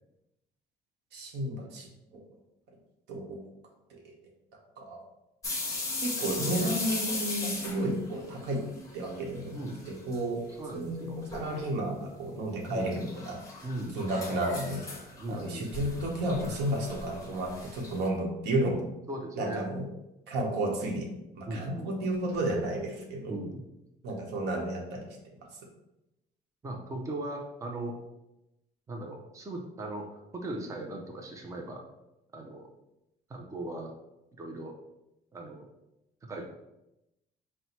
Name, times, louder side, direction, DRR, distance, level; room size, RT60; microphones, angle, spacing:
voice 1, 1.1-2.2 3.1-3.4 3.9-4.0 4.8-5.0 6.0-8.6 8.9-9.6 9.9-10.4 10.7-13.4 13.9-14.8 15.3-18.8 19.3-19.8 20.3-21.1 21.3-23.4 24.0-25.1, right 1 dB, 85° right, 0 dB, 1.0 m, -32 dB
sound 1, 5.4-9.2 9.5-10.2 10.5-10.6 11.3-11.7 12.7-18.1, left 2 dB, 20° left, 0.9 m, -38 dB
voice 2, 9.5-9.8 10.6-11.2 12.7-12.9 13.6-14.0 15.2-15.7 19.1-19.7 21.5-21.9 23.3-23.6 26.6-28.0 28.9-31.8 32.3-32.7 33.3-33.9 34.4-34.7 35.3-35.7 36.2-36.4, right 1 dB, 20° right, 1 dB, 0.5 m, -38 dB
4.1 x 2.1 x 4.3 m, 0.90 s
cardioid pair, 135°, 17 cm